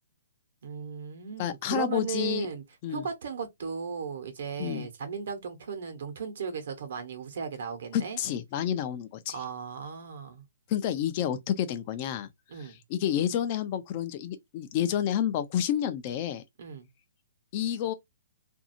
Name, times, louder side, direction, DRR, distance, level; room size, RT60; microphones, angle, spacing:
voice 1, 0.6-2.6 2.9-8.2 9.3-10.4 12.5-12.8 16.6-16.9, right 6 dB, 65° right, 1.1 m, -36 dB
voice 2, 1.4-2.5 2.8-3.1 4.6-4.9 7.9-9.4 10.7-12.3 12.6-16.4 17.5-17.9, left 10 dB, 35° left, 0.5 m, -29 dB
2.6 x 2.4 x 2.7 m
hypercardioid pair, 150°, 0 cm